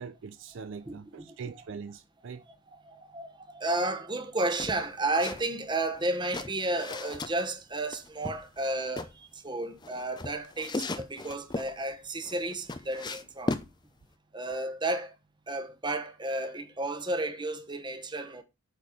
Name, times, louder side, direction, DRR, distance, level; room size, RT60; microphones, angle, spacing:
voice 1, 0.0-2.4, right 5 dB, 55° right, 0.4 m, -42 dB
voice 2, 0.9-1.2 2.8-13.6 14.3-15.1 15.5-18.4, right 2 dB, 20° right, 1.0 m, -32 dB
sound 1, 4.6-5.4 5.7-7.3 7.9-9.1 9.8-11.7 12.2-13.7, left 2 dB, 20° left, 0.5 m, -36 dB
8.1 x 4.2 x 4.9 m
head